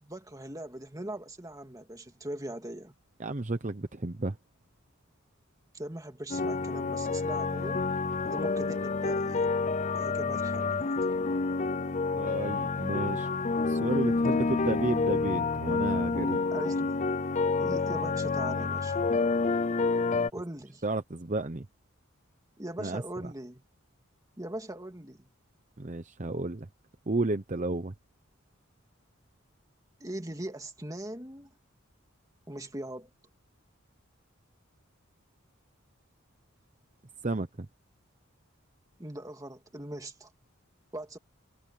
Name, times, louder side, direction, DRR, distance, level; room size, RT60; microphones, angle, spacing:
voice 1, 0.0-2.9 5.7-7.9 8.2-9.5 9.9-11.0 15.5-15.6 16.5-17.0 17.5-19.0 20.3-20.8 22.6-23.6 24.4-25.3 30.0-31.5 32.5-33.1 39.0-40.3 40.9-41.2, right 1 dB, 15° right, 2.4 m, -40 dB
voice 2, 3.2-4.4 12.2-13.3 13.7-16.4 20.8-21.7 22.8-23.0 25.8-26.7 27.1-27.9 37.2-37.7, right 2 dB, 35° right, 0.9 m, -32 dB
sound 1, 6.3-20.3, left 4 dB, 35° left, 0.6 m, -28 dB
head